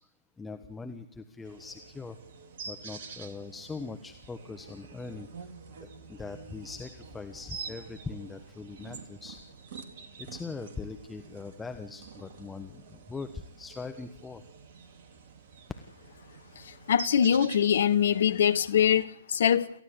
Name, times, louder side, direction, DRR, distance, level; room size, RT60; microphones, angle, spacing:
voice 1, 0.4-2.2 2.7-5.3 5.8-9.4 10.2-14.4, left 4 dB, 10° left, 1.3 m, -41 dB
sound 1, 1.4-19.0, right 5 dB, 50° right, 2.5 m, -47 dB
voice 2, 16.6-19.7, left 8 dB, 60° left, 1.2 m, -23 dB
28.5 x 15.0 x 8.2 m
figure-of-eight pair, 120°, 0 cm